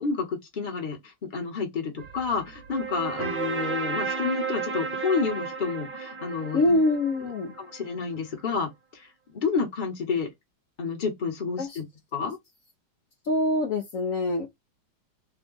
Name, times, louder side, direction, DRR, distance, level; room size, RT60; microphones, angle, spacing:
voice 1, 0.0-6.8 7.6-10.3 10.8-11.9 12.1-12.4, left 5 dB, 30° left, 0.9 m, -30 dB
sound 1, 2.0-7.9, right 5 dB, 50° right, 1.3 m, -33 dB
voice 2, 6.5-7.5 11.6-11.8 13.2-14.5, left 2 dB, 75° left, 0.7 m, -24 dB
3.5 x 2.3 x 3.8 m
omnidirectional pair, 2.3 m